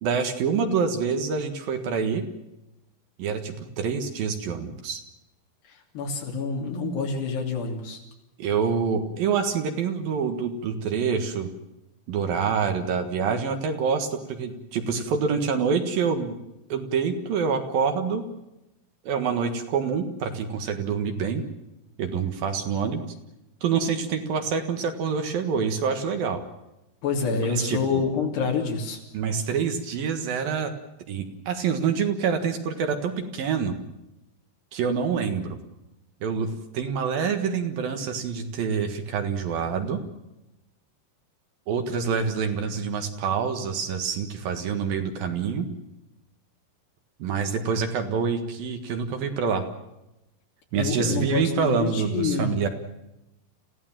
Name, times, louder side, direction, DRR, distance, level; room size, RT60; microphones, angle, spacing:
voice 1, 0.0-2.2 3.2-5.0 8.4-11.5 12.1-16.4 16.7-18.2 19.0-21.4 22.0-23.0 23.6-26.4 27.4-28.0 29.1-30.7 31.1-33.7 34.7-35.6 36.2-40.0 41.7-45.7 47.2-49.6 50.7-52.7, right 6 dB, 65° right, 6 dB, 3.2 m, -26 dB
voice 2, 5.9-8.0 27.0-29.0 50.8-52.6, left 4 dB, 80° left, 0 dB, 5.0 m, -27 dB
28.0 x 16.0 x 7.6 m, 0.92 s
omnidirectional pair, 4.7 m